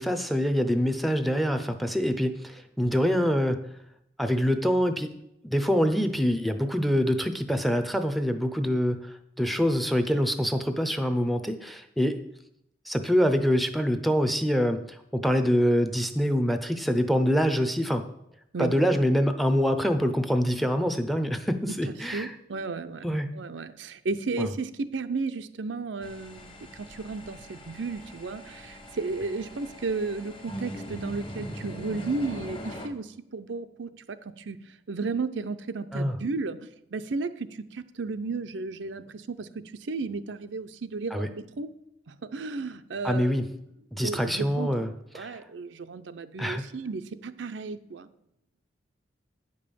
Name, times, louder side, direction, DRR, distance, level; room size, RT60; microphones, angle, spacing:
voice 1, 0.0-3.6 4.2-5.1 5.4-12.2 12.9-18.1 18.6-22.3 23.0-23.3 24.4-24.5 35.9-36.1 41.1-41.3 43.0-43.5 43.9-44.9 45.1-45.4 46.4-46.6, equal, ahead, 9 dB, 0.6 m, -25 dB
voice 2, 22.1-23.1 23.3-41.7 42.1-43.4 43.9-48.1, right 3 dB, 85° right, 10 dB, 0.6 m, -34 dB
sound 1, 26.0-32.9, equal, 30° left, 1.2 m, -41 dB
9.7 x 5.4 x 6.9 m, 0.79 s
head